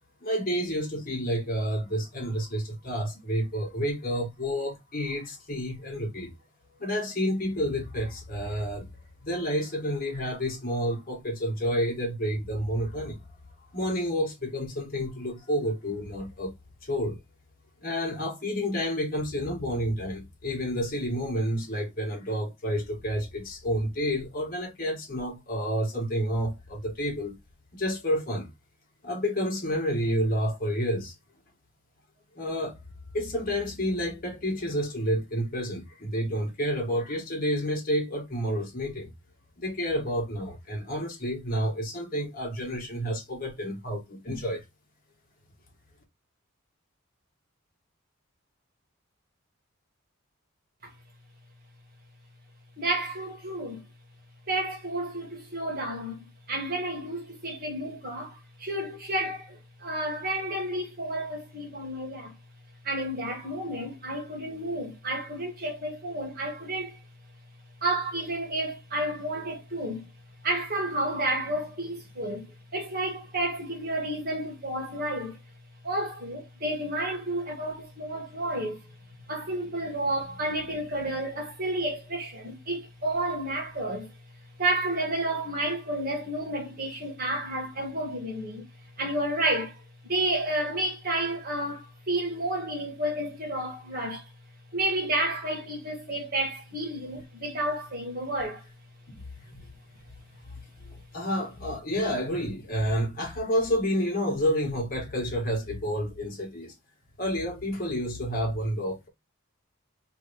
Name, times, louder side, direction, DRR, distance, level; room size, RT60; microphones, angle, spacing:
voice 1, 0.2-6.3 6.8-8.9 9.2-13.2 13.7-16.5 16.8-17.2 17.8-27.4 27.7-28.5 29.0-31.1 32.3-32.8 33.1-39.1 39.6-44.6 99.1-99.7 100.8-106.7 107.2-109.1, equal, 40° left, 1.7 m, -29 dB
voice 2, 52.8-53.8 54.5-62.4 62.8-67.0 67.8-70.1 70.4-75.4 75.8-78.8 79.3-84.1 84.6-88.6 89.0-89.8 90.1-94.3 94.7-98.6, right 1 dB, 45° right, 1.8 m, -31 dB
3.4 x 3.3 x 3.1 m
head